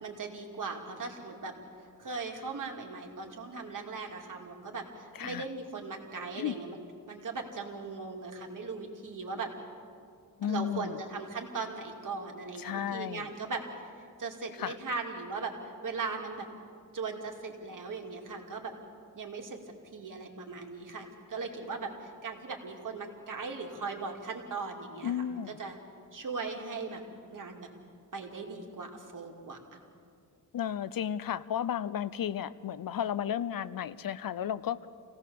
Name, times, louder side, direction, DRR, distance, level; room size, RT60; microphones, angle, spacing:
voice 1, 0.0-1.5 2.0-6.8 7.1-9.5 10.4-13.9 14.2-16.5 16.9-18.7 19.1-19.6 19.9-25.8 26.1-27.0 27.3-27.7 28.1-29.8, right 4 dB, 65° right, 1 dB, 2.4 m, -39 dB
voice 2, 10.4-11.0 12.6-13.3 14.6-14.8 25.0-25.6 30.5-34.9, left 9 dB, 75° left, 15 dB, 0.6 m, -33 dB
26.0 x 17.0 x 7.0 m, 2.4 s
wide cardioid pair, 165°, 35 cm